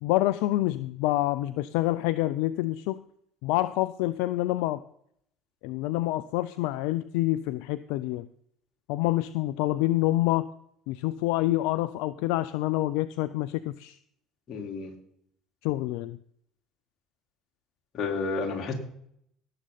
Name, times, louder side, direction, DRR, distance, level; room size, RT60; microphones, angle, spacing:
voice 1, 0.0-3.0 3.4-4.8 5.6-8.3 8.9-10.5 10.9-14.0 15.6-16.2, left 16 dB, 75° left, 15 dB, 0.4 m, -27 dB
voice 2, 14.5-14.9 17.9-18.7, left 4 dB, 50° left, 0 dB, 3.8 m, -31 dB
18.0 x 7.6 x 4.1 m, 0.69 s
hypercardioid pair, 75°, 0 cm